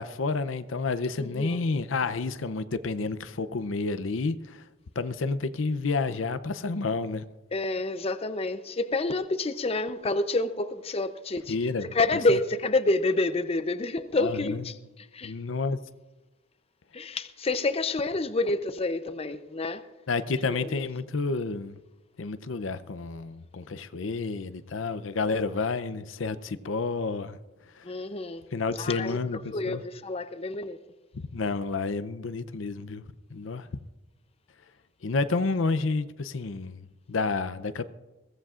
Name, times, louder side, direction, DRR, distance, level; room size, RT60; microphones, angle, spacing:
voice 1, 0.0-4.6 5.0-7.3 11.5-12.0 12.3-12.4 14.1-14.6 15.2-15.8 20.1-21.8 22.2-27.4 27.7-27.9 28.5-29.8 31.1-33.0 33.3-33.7 35.0-37.9, left 3 dB, 85° left, 0.6 m, -30 dB
voice 2, 1.2-1.6 7.5-11.5 11.8-14.7 15.1-15.3 16.9-19.8 20.5-20.7 27.8-28.4 28.8-29.2 29.5-30.8, left 2 dB, 30° left, 0.6 m, -28 dB
22.0 x 16.5 x 2.5 m
head